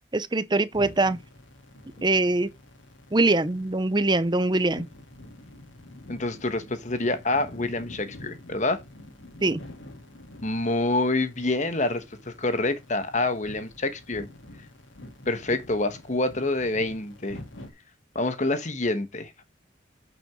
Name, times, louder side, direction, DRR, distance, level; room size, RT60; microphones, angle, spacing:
voice 1, 0.1-1.2 2.0-2.5 3.1-4.9 9.4-9.6, right 2 dB, 25° right, 0.7 m, -23 dB
sound 1, 0.7-17.7, left 1 dB, 85° left, 2.9 m, -47 dB
voice 2, 6.1-8.8 10.4-14.3 15.3-17.4 18.1-19.4, left 2 dB, 40° left, 1.3 m, -27 dB
8.8 x 6.2 x 3.6 m
head